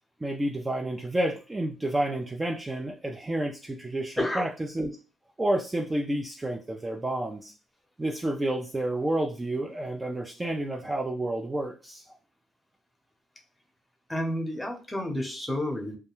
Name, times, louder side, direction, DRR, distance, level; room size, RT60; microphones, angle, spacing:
voice 1, 0.2-4.5 4.7-4.9 5.4-7.5 8.0-12.0, right 1 dB, 20° right, 0 dB, 0.4 m, -30 dB
voice 2, 4.2-4.5 14.1-16.0, left 1 dB, 10° left, 3 dB, 0.7 m, -30 dB
2.3 x 2.1 x 3.0 m, 0.34 s
cardioid pair, 90°, 0 cm